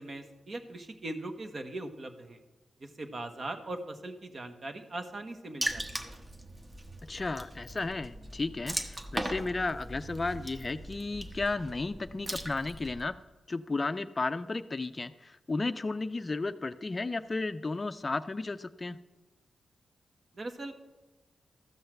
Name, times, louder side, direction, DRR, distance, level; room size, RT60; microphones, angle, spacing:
voice 1, 0.0-2.4 2.8-6.1 20.3-20.7, right 2 dB, 45° right, 7 dB, 1.2 m, -40 dB
Water / Splash splatter, 5.6-13.0, right 1 dB, 25° right, 1.1 m, -39 dB
voice 2, 7.1-13.1 13.5-19.0, left 3 dB, 30° left, 11 dB, 0.4 m, -33 dB
13.5 x 5.6 x 7.7 m, 1.2 s
cardioid pair, 80°, 0 cm